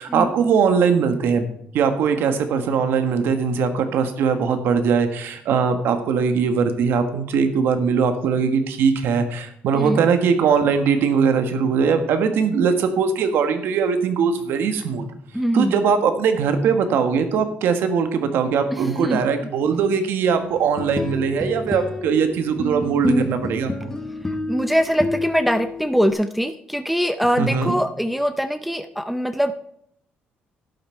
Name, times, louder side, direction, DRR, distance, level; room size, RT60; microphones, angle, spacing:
voice 1, 0.0-1.4 1.7-15.0 15.5-23.9 27.4-27.8, right 6 dB, 80° right, 8 dB, 1.4 m, -20 dB
voice 2, 15.3-15.8 18.7-19.2 24.5-29.5, equal, ahead, 8 dB, 0.5 m, -22 dB
sound 1, 20.6-26.1, left 2 dB, 15° left, 1.3 m, -28 dB
11.5 x 9.2 x 4.5 m, 0.70 s
cardioid pair, 120°, 4 cm